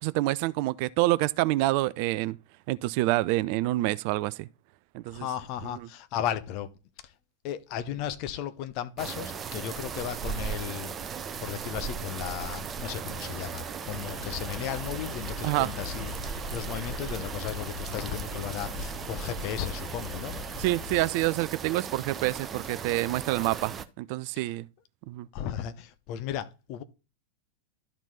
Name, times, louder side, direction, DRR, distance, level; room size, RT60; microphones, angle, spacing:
voice 1, 0.0-2.4 2.7-4.5 4.9-5.3 5.6-5.9 15.4-15.7 20.6-24.7 25.1-25.3, right 18 dB, 45° right, 0.3 m, -27 dB
voice 2, 5.1-6.7 7.0-7.1 7.4-20.3 24.4-24.5 25.3-26.8, left 10 dB, 45° left, 0.9 m, -35 dB
sound 1, 9.0-23.8, right 6 dB, 25° right, 0.7 m, -37 dB
sound 2, 13.8-21.1, left 5 dB, 25° left, 1.5 m, -40 dB
12.0 x 4.4 x 4.0 m
figure-of-eight pair, 90°, 0 cm